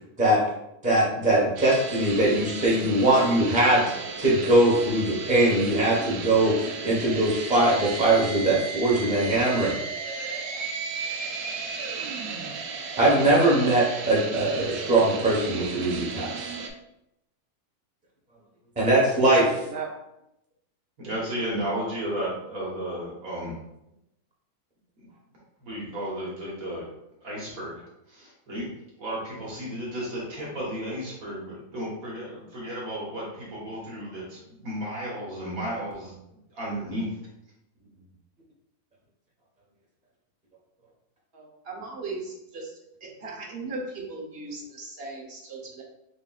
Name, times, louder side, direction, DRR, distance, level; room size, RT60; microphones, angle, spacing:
voice 1, 0.8-9.8 13.0-16.5 18.8-19.6, right 1 dB, 5° right, -4 dB, 0.9 m, -21 dB
sound 1, 1.6-16.7, right 4 dB, 80° right, 1.1 m, -34 dB
voice 2, 21.0-23.6 25.0-25.1 25.6-26.9 27.2-27.8 28.1-28.7 29.0-36.1 36.5-37.1 37.8-37.9, equal, 65° right, -5 dB, 1.7 m, -33 dB
voice 3, 41.3-42.7 43.2-45.8, right 3 dB, 45° right, -1 dB, 1.0 m, -37 dB
6.4 x 2.6 x 2.4 m, 0.85 s
omnidirectional pair, 1.6 m